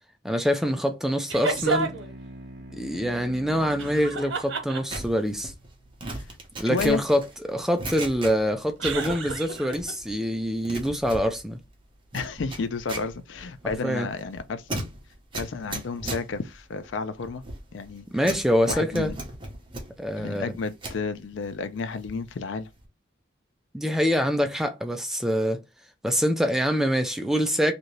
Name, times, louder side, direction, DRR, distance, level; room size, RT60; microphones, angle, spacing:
voice 1, 0.2-1.9 2.8-5.5 6.6-11.6 13.8-14.1 18.1-19.1 20.0-20.5 23.7-25.6 26.0-27.7, equal, ahead, 0.4 m, -25 dB
sound 1, 1.3-2.1 3.8-5.2 8.8-9.9, right 4 dB, 90° right, 1.0 m, -30 dB
sound 2, 1.5-6.4, right 1 dB, 60° right, 0.6 m, -45 dB
sound 3, 4.9-8.7 8.9-10.1 10.4-21.0 21.5-22.3 22.6-22.9, right 2 dB, 25° right, 0.8 m, -38 dB
voice 2, 6.7-7.0 12.1-14.8 15.3-17.4 17.7-18.1 18.7-19.2 20.2-22.7, left 4 dB, 70° left, 0.4 m, -31 dB
2.8 x 2.6 x 3.1 m
head